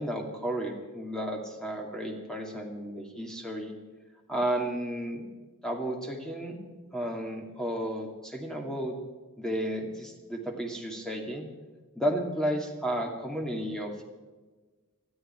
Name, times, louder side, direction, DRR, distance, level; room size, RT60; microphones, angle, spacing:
voice 1, 0.0-3.7 4.3-5.3 5.6-6.6 6.9-8.9 9.4-11.4 11.9-13.9, right 1 dB, 5° left, 1 dB, 2.4 m, -32 dB
20.5 x 12.5 x 4.5 m, 1.3 s
head